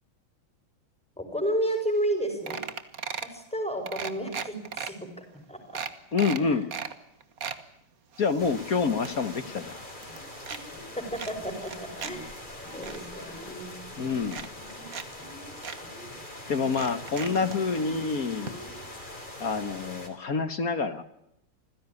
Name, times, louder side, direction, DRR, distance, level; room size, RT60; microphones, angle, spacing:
voice 1, 1.2-2.6 3.2-5.6 6.4-6.6 11.0-12.4 12.7-13.8, right 1 dB, 5° left, 6 dB, 5.4 m, -32 dB
sound 1, 1.7-1.8 2.0-2.2 2.5-3.4 3.9-4.9 5.4-5.5 5.7-6.9 7.2-7.6 8.1-9.6 9.9-10.6 11.2-12.1 12.5-13.0 13.8-13.9 14.3-15.1 15.3-15.4 15.6-15.8 16.7-17.6 18.5-18.6 18.8-18.9, right 6 dB, 45° right, 1.7 m, -37 dB
voice 2, 6.1-6.7 8.2-9.8 14.0-14.5 16.5-18.5 19.4-21.0, left 5 dB, 50° left, 12 dB, 1.5 m, -27 dB
sound 2, 8.4-20.1, left 1 dB, 20° left, 4.1 m, -43 dB
sound 3, 9.4-9.7 10.1-10.3 10.7-10.9 11.4-11.6 12.0-12.3 12.6-12.9 13.3-13.5 13.9-14.3 14.6-14.9 15.2-15.6 15.8-16.2 16.5-18.8, right 1 dB, 90° left, 7.6 m, -47 dB
27.0 x 16.0 x 9.7 m, 0.80 s
omnidirectional pair, 2.3 m